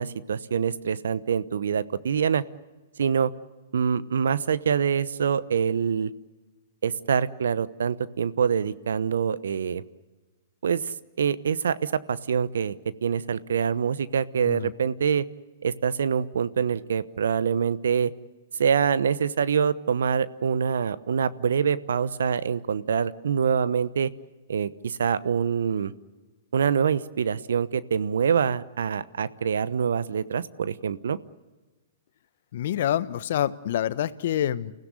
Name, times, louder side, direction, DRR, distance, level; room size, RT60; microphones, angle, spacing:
voice 1, 0.0-2.4 3.0-3.3 3.7-6.1 6.8-9.8 10.6-12.8 13.0-15.2 15.6-18.1 18.6-24.1 24.5-25.9 26.5-31.2, right 7 dB, 70° right, 16 dB, 1.0 m, -25 dB
voice 2, 32.5-34.7, left 11 dB, 60° left, 15 dB, 1.0 m, -27 dB
30.0 x 16.5 x 9.7 m, 1.2 s
hypercardioid pair, 115°, 0 cm